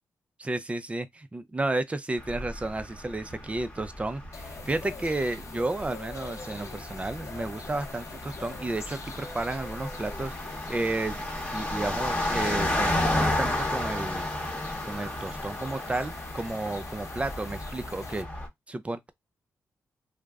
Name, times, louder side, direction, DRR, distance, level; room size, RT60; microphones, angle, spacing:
voice 1, 0.4-11.2 11.5-14.5 14.8-18.3 18.7-19.1, right 2 dB, 20° right, 0.4 m, -32 dB
sound 1, 2.2-18.5, left 1 dB, 20° left, 0.9 m, -33 dB
sound 2, 4.3-18.2, left 4 dB, 55° left, 0.7 m, -44 dB
2.4 x 2.0 x 3.4 m
cardioid pair, 90°, 6 cm